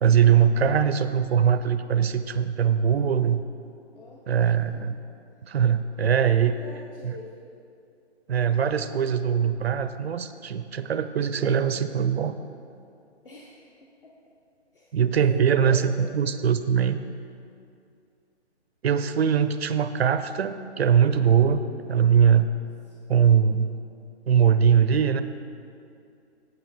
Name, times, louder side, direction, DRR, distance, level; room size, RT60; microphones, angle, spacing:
voice 1, 0.0-3.4 4.3-5.0 5.4-6.5 7.0-7.1 8.3-12.3 14.9-17.0 18.8-22.6 23.1-23.8 24.3-25.2, right 8 dB, 65° right, 11 dB, 0.4 m, -21 dB
voice 2, 3.9-4.8 6.3-7.3 13.2-13.7 14.0-14.1 14.7-15.0 15.3-16.2 21.5-22.6 22.9-23.0, left 2 dB, 50° left, -2 dB, 0.8 m, -45 dB
8.4 x 6.5 x 4.1 m, 2.5 s
hypercardioid pair, 180°, 34 cm